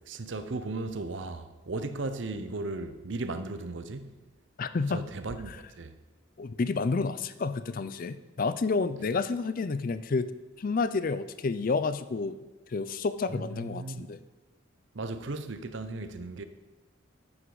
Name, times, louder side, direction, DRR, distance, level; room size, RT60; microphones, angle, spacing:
voice 1, 0.1-4.2 4.9-6.0 13.3-14.1 14.9-16.4, right 2 dB, 60° right, 0.7 m, -36 dB
voice 2, 4.6-5.1 6.4-10.3 10.6-12.4 12.7-14.2, left 4 dB, 40° left, 0.4 m, -30 dB
9.8 x 9.4 x 3.9 m
head